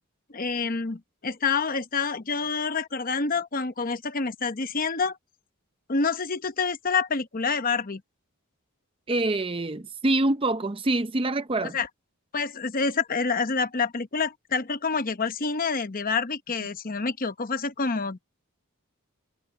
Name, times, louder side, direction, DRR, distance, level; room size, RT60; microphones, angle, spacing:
voice 1, 0.3-5.2 5.9-8.0 11.6-11.9 12.3-18.2, left 4 dB, 40° left, 0.9 m, -27 dB
voice 2, 9.1-11.8, right 2 dB, 25° right, 0.6 m, -25 dB
head